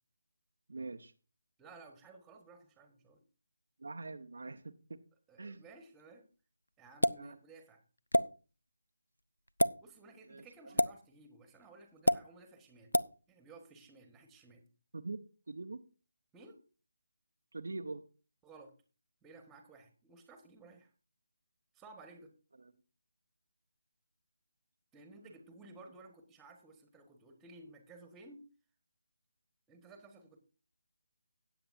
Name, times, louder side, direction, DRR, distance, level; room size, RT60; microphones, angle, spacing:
voice 1, 0.7-1.1 3.8-5.0 5.4-5.6 7.2-7.4 10.3-10.7 14.9-15.2 15.5-15.8 17.5-18.0 22.6-22.7, right 3 dB, 60° right, 6 dB, 0.8 m, -43 dB
voice 2, 1.6-3.2 5.3-6.2 6.8-7.8 9.8-12.9 13.3-14.6 16.3-16.6 18.4-18.7 19.2-20.9 21.7-22.3 24.9-28.5 29.7-30.4, right 3 dB, 10° right, 6 dB, 1.4 m, -56 dB
sound 1, 7.0-7.2 8.1-8.3 9.5-9.7 10.8-10.9 12.1-12.2 12.9-13.1, left 1 dB, 85° left, 0.4 m, -26 dB
17.5 x 7.8 x 2.6 m, 0.35 s
figure-of-eight pair, 155°, 0 cm